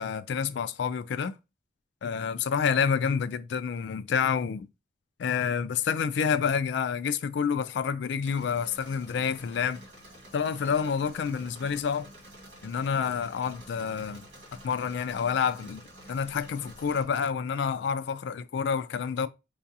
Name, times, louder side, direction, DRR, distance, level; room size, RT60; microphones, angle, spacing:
voice 1, 0.0-1.4 2.0-4.7 5.2-9.8 10.3-12.1 12.6-14.3 14.6-15.8 16.1-19.3, left 6 dB, 65° left, 0.3 m, -28 dB
Engine / Mechanisms, 8.2-17.0, right 1 dB, 70° right, 1.7 m, -49 dB
4.7 x 2.3 x 2.7 m
head